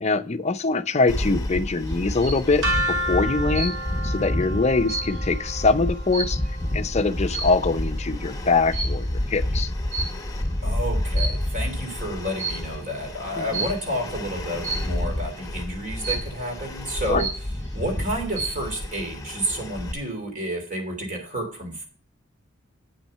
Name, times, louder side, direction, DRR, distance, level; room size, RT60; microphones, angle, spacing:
voice 1, 0.0-3.7 4.0-6.4 6.7-9.7 13.4-13.6 17.1-17.2, left 3 dB, 35° left, 10 dB, 0.6 m, -23 dB
sound 1, 1.1-19.9, left 1 dB, 15° left, 1.1 m, -29 dB
sound 2, 1.9-2.5 3.5-4.1 4.5-6.7 7.3-7.7 8.7-9.1 9.9-10.5 11.0-11.7 12.4-12.8 13.5-13.9 14.6-15.1 16.0-16.5 16.9-17.0 17.2-17.8 18.2-18.7, right 3 dB, 65° right, 4.4 m, -32 dB
sound 3, 2.6-8.5, equal, 85° right, 2.1 m, -32 dB
voice 2, 10.6-17.3 17.7-21.8, right 1 dB, 40° right, 3 dB, 2.9 m, -30 dB
8.6 x 7.5 x 5.4 m, 0.39 s
head